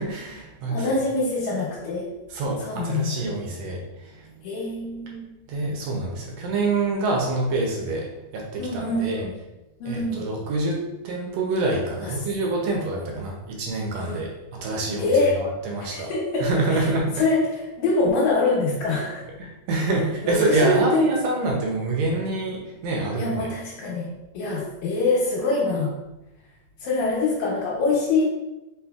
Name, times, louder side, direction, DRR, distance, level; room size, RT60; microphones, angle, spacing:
voice 1, 0.0-0.9 2.3-4.3 5.5-9.2 9.9-16.1 16.4-17.1 19.4-23.5, right 2 dB, 75° right, 0 dB, 1.7 m, -26 dB
voice 2, 0.7-2.1 2.6-3.2 4.4-5.3 8.6-9.3 9.8-10.2 12.0-12.1 14.0-14.2 15.0-15.4 15.8-16.9 17.2-19.3 20.2-21.1 22.1-22.2 23.1-25.9 26.8-28.2, left 3 dB, 80° left, -6 dB, 2.1 m, -24 dB
4.1 x 4.0 x 2.3 m, 1.0 s
omnidirectional pair, 3.4 m